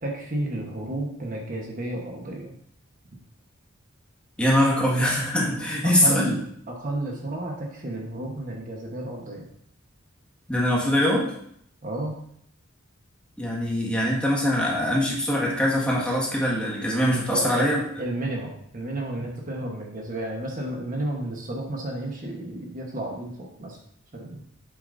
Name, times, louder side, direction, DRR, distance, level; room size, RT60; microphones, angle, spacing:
voice 1, 0.0-2.5 5.8-6.4 6.7-9.5 11.8-12.2 17.3-17.7 18.0-23.8 24.1-24.4, right 1 dB, 40° right, 0 dB, 1.2 m, -32 dB
voice 2, 4.4-6.3 10.5-11.3 13.4-17.8, equal, 5° left, -4 dB, 1.8 m, -23 dB
8.3 x 7.0 x 2.7 m, 0.69 s
head